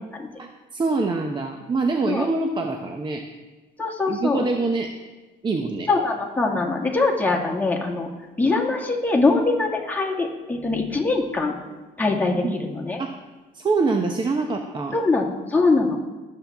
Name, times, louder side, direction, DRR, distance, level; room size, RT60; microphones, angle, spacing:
voice 1, 0.4-3.2 4.1-4.9 5.4-5.9 12.4-12.6 13.0-13.2 13.5-15.0, right 3 dB, 25° right, 4 dB, 0.8 m, -25 dB
voice 2, 3.8-4.4 5.9-8.1 8.4-11.6 12.0-13.0 14.9-16.0, left 3 dB, 10° left, -1 dB, 2.0 m, -22 dB
19.0 x 7.7 x 3.5 m, 1.2 s
cardioid pair, 110°, 17 cm